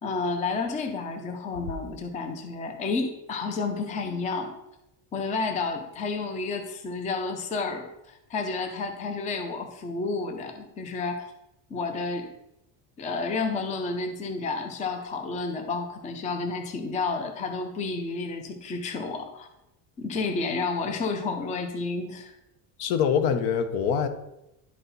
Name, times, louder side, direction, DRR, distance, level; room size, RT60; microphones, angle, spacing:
voice 1, 0.0-4.6 5.1-11.3 11.7-12.3 13.0-19.5 20.0-22.3, left 4 dB, 20° left, 5 dB, 0.5 m, -31 dB
voice 2, 22.8-24.1, left 7 dB, 65° left, 9 dB, 1.0 m, -24 dB
11.0 x 4.2 x 4.1 m, 0.87 s
cardioid pair, 180°, 41 cm